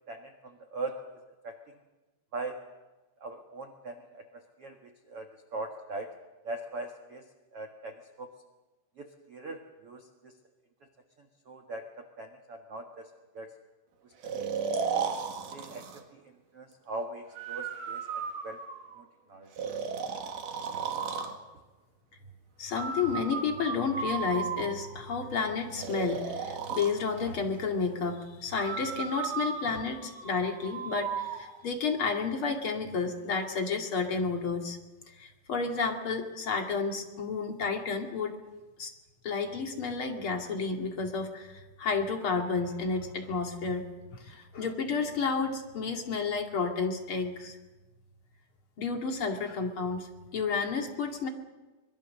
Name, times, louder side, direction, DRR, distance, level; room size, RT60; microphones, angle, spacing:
voice 1, 0.1-1.0 1.4-1.5 2.3-2.6 3.2-6.1 6.4-7.2 7.5-8.3 9.0-10.3 11.2-13.1 13.3-13.5 14.0-14.5 15.5-16.2 16.5-18.6 19.0-19.5, right 2 dB, 85° right, 4 dB, 1.3 m, -41 dB
Breathing, 14.2-16.0 17.3-19.0 19.6-21.4 22.7-25.0 25.8-26.9 28.6-31.4, right 6 dB, 55° right, 2.8 m, -35 dB
voice 2, 22.6-34.8 35.2-38.4 38.8-38.9 39.2-43.8 44.1-47.6 48.8-51.3, left 5 dB, 40° left, 3 dB, 2.2 m, -31 dB
24.5 x 22.0 x 6.6 m, 1.2 s
omnidirectional pair, 5.4 m